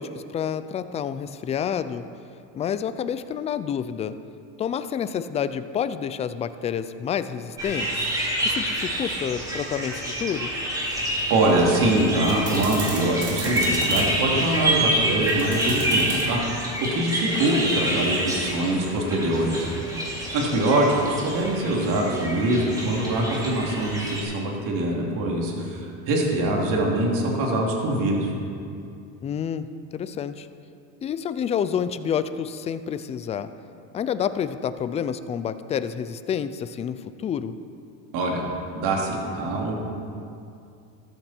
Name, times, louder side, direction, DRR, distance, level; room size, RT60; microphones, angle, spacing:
voice 1, 0.0-2.1 2.5-4.2 4.6-8.1 8.4-10.5 20.5-20.7 29.2-30.5 31.0-33.5 33.9-37.6, left 8 dB, 20° left, 12 dB, 0.3 m, -29 dB
sound 1, 7.6-24.2, right 1 dB, 10° right, 3.1 m, -28 dB
sound 2, 10.8-16.2, right 2 dB, 35° right, 3.6 m, -35 dB
voice 2, 11.3-19.7 20.3-28.3 38.1-38.5 38.7-39.7, right 1 dB, 50° right, -1 dB, 3.2 m, -24 dB
14.0 x 13.0 x 4.4 m, 2.5 s
supercardioid pair, 130°, 40 cm